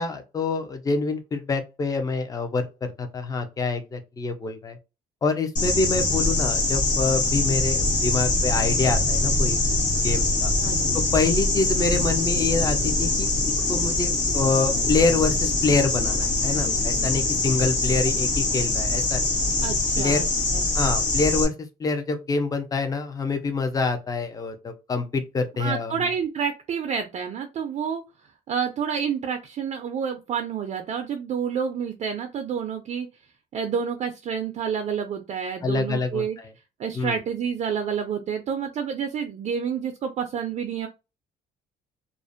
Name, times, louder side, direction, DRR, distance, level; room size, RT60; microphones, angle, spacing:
voice 1, 0.0-4.8 5.2-9.6 10.0-10.5 10.9-13.3 13.7-19.3 20.0-20.3 20.7-26.1 35.6-36.5 36.9-37.2, left 4 dB, 20° left, 0.4 m, -26 dB
sound 1, 5.6-21.5, left 2 dB, 50° left, 1.1 m, -23 dB
voice 2, 19.6-20.3 20.5-20.7 25.6-28.0 28.5-33.1 33.5-36.4 36.8-40.9, right 7 dB, 40° right, 0.4 m, -29 dB
2.4 x 2.1 x 2.5 m
cardioid pair, 110°, 17 cm